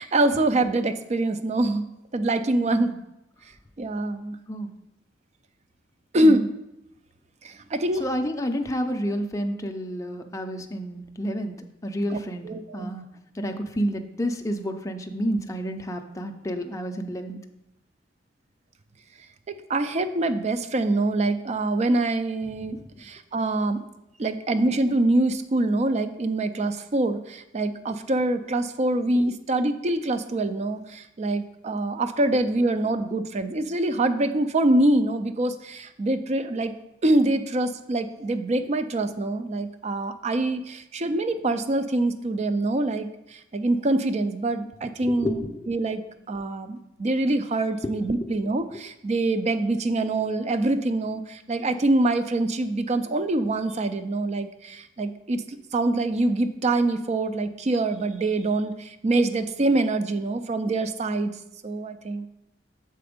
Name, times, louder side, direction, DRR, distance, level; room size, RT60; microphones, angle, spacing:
voice 1, 0.0-1.8 2.1-2.9 3.8-4.4 6.1-6.5 7.4-8.0 12.1-12.2 12.4-12.9 19.7-23.8 24.2-36.7 37.0-46.0 46.3-61.3 61.6-62.3, right 2 dB, 40° right, 10 dB, 0.4 m, -25 dB
voice 2, 2.6-3.0 4.5-4.7 6.2-6.4 8.0-11.5 11.8-12.5 12.7-13.1 13.3-17.4 22.6-23.1 45.0-45.3 45.6-45.7 47.8-48.0 48.3-48.4, equal, 15° left, 4 dB, 0.5 m, -30 dB
6.8 x 4.3 x 5.0 m, 0.88 s
head